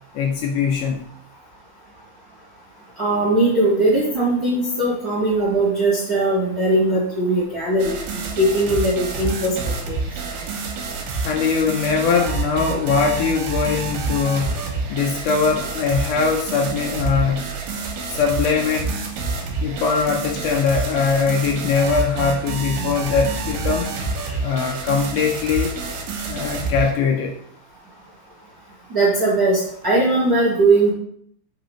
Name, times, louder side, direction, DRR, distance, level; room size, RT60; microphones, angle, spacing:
voice 1, 0.1-1.1 11.2-14.6 14.9-17.6 18.1-18.9 19.6-23.9 24.4-25.8 26.3-27.4, left 5 dB, 80° left, 2 dB, 2.0 m, -21 dB
voice 2, 3.0-9.5 9.9-10.0 28.9-30.9, right 2 dB, 45° right, -7 dB, 1.2 m, -19 dB
sound 1, 7.8-26.9, right 3 dB, 80° right, 2.8 m, -28 dB
6.6 x 5.5 x 3.0 m, 0.69 s
omnidirectional pair, 4.1 m